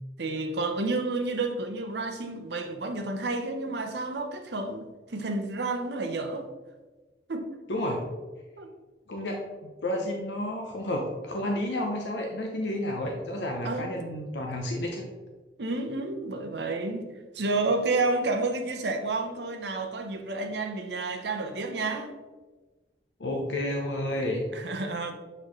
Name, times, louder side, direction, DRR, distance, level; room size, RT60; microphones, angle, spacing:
voice 1, 0.2-6.5 7.3-7.5 8.6-8.7 13.6-14.1 15.6-22.1 24.5-25.1, right 3 dB, 75° right, 0.8 m, -30 dB
voice 2, 7.7-8.0 9.1-15.1 23.2-24.4, left 1 dB, 85° left, 0.8 m, -31 dB
7.6 x 4.2 x 3.1 m
head